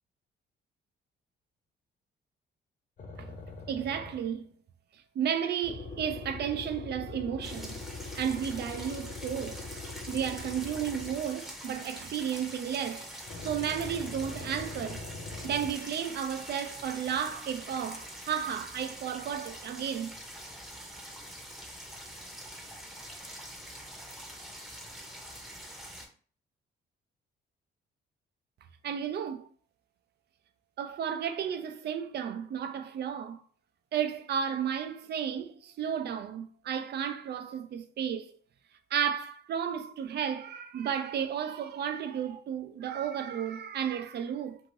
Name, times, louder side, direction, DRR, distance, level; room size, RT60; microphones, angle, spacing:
sound 1, 3.0-4.4 5.6-11.4 13.3-15.7, left 3 dB, 40° left, 0.6 m, -42 dB
voice 1, 3.7-4.5 5.2-7.8 8.2-9.6 10.1-13.1 13.4-15.1 15.4-20.1 28.8-29.5 30.8-33.4 33.9-38.3 38.9-44.6, right 8 dB, 55° right, 0.5 m, -33 dB
sound 2, 7.4-26.1, equal, ahead, 0.8 m, -45 dB
2.7 x 2.6 x 3.1 m
cardioid pair, 90°, 20 cm